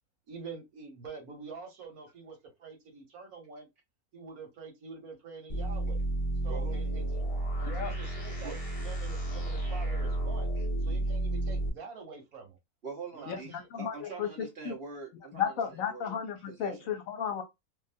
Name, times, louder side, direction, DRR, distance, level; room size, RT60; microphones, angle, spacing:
voice 1, 0.3-3.7 4.1-6.0 6.4-7.2 7.6-10.5 10.8-12.6 13.1-13.7, right 4 dB, 85° right, 1.6 m, -46 dB
sound 1, 5.5-11.7, right 1 dB, 30° left, 1.0 m, -32 dB
voice 2, 6.5-6.8 8.4-8.6 12.8-16.2 16.5-16.9, right 4 dB, 45° right, 1.3 m, -44 dB
voice 3, 13.3-14.3 14.6-14.7 15.3-17.4, left 8 dB, 75° left, 1.2 m, -34 dB
3.2 x 2.4 x 2.5 m
omnidirectional pair, 1.5 m